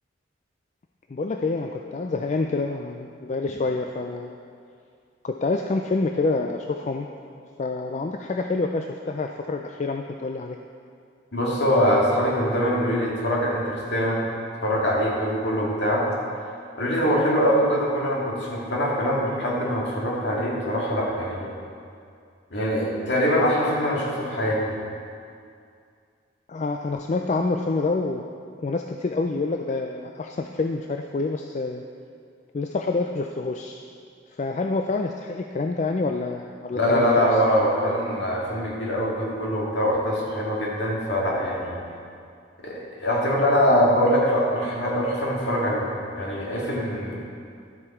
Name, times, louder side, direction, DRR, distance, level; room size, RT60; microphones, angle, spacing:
voice 1, 1.1-4.4 5.2-7.1 7.6-10.6 17.2-17.3 26.5-28.2 28.6-31.8 32.5-33.8 34.3-37.3, left 3 dB, 35° left, 4 dB, 0.3 m, -27 dB
voice 2, 11.3-14.2 14.6-16.1 16.8-21.5 22.5-24.7 36.7-41.8 42.6-45.9 46.1-47.2, equal, 60° left, -4 dB, 2.2 m, -23 dB
12.0 x 8.0 x 4.4 m, 2.3 s
head